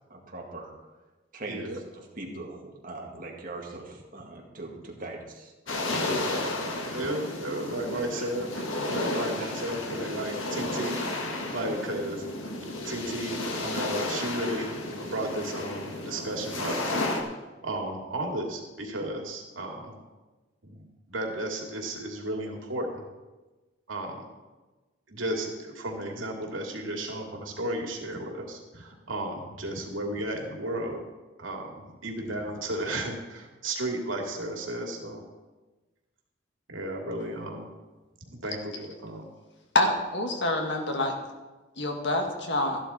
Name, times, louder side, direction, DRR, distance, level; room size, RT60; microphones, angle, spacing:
voice 1, 0.1-0.7 1.3-5.5 6.3-6.5 8.2-8.3 9.1-9.5, right 2 dB, 45° right, 0 dB, 2.2 m, -41 dB
voice 2, 1.5-1.8 6.9-8.5 8.8-11.0 11.5-12.3 12.8-14.7 15.1-16.8 17.6-19.9 20.6-23.0 23.9-24.3 25.1-31.0 31.4-35.2 36.7-37.7 38.3-39.2, right 1 dB, 85° right, 1 dB, 2.6 m, -34 dB
sound 1, 5.7-17.2, left 2 dB, 85° left, 1.7 m, -32 dB
voice 3, 39.7-41.1 41.8-42.8, left 1 dB, 60° left, 3 dB, 1.9 m, -26 dB
13.5 x 11.5 x 4.3 m, 1.2 s
head